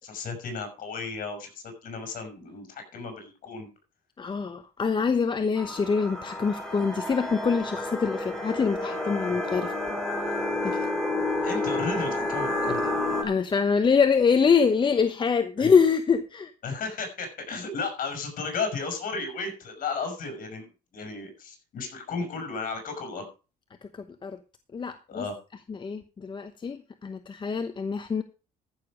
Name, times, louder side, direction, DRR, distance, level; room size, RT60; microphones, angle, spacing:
voice 1, 0.0-3.7 9.3-9.4 11.4-12.8 15.6-15.8 16.6-20.7 20.9-23.3 25.1-25.3, left 4 dB, 55° left, 6 dB, 6.5 m, -34 dB
voice 2, 4.2-9.7 10.6-10.9 12.8-12.9 13.2-16.5 24.2-24.4 24.7-25.3 25.7-28.2, left 5 dB, 30° left, 9 dB, 1.0 m, -25 dB
sound 1, 5.6-13.2, left 2 dB, 5° left, 3.3 m, -30 dB
14.5 x 6.9 x 5.0 m, 0.33 s
cardioid pair, 110°, 17 cm